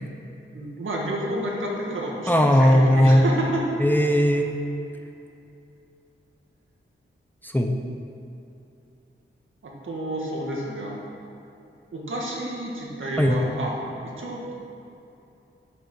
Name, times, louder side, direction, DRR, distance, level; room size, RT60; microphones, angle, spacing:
voice 1, 0.5-3.6 9.6-11.0 11.9-14.5, right 1 dB, 70° right, -2 dB, 1.8 m, -30 dB
voice 2, 2.3-3.2 3.8-4.5 7.4-7.8 13.2-13.4, equal, 10° left, 3 dB, 0.6 m, -18 dB
10.5 x 7.7 x 4.6 m, 2.8 s
wide cardioid pair, 130°, 21 cm